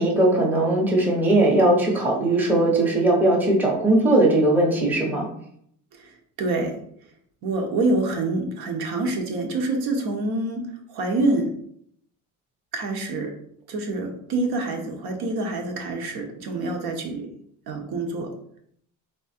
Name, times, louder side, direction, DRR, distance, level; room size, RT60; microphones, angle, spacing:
voice 1, 0.0-5.3, right 1 dB, 5° right, -2 dB, 0.8 m, -19 dB
voice 2, 5.9-6.7 7.4-11.5 12.7-13.3 13.7-17.3 17.7-18.3, right 2 dB, 60° right, 4 dB, 0.9 m, -26 dB
3.6 x 3.0 x 4.2 m, 0.68 s
cardioid pair, 150°, 41 cm